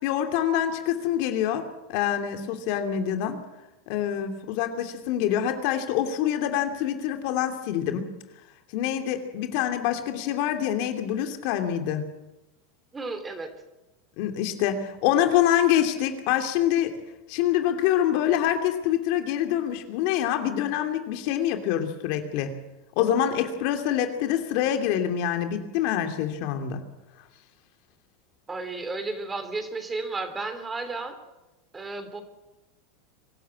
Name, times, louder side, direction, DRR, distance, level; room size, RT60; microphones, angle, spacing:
voice 1, 0.0-3.4 3.9-8.1 8.7-12.0 14.2-17.0 17.3-22.6 23.0-26.8, left 10 dB, 60° left, 6 dB, 2.7 m, -25 dB
voice 2, 12.9-13.5 28.5-31.2 31.7-32.2, right 3 dB, 15° right, 9 dB, 3.3 m, -33 dB
23.5 x 13.0 x 8.7 m, 0.99 s
supercardioid pair, 120°, 0 cm